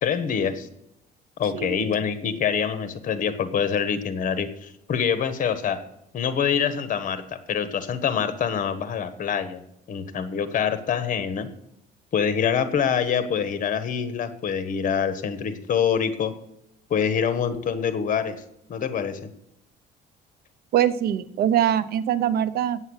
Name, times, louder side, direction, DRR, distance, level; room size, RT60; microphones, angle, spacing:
voice 1, 0.0-0.7 1.4-5.8 6.1-9.6 9.9-11.5 12.1-16.3 16.9-18.4 18.7-19.3, left 7 dB, 50° left, 11 dB, 1.4 m, -25 dB
voice 2, 20.7-22.8, right 10 dB, 65° right, 15 dB, 0.7 m, -23 dB
8.1 x 7.8 x 8.2 m, 0.80 s
cardioid pair, 110°, 17 cm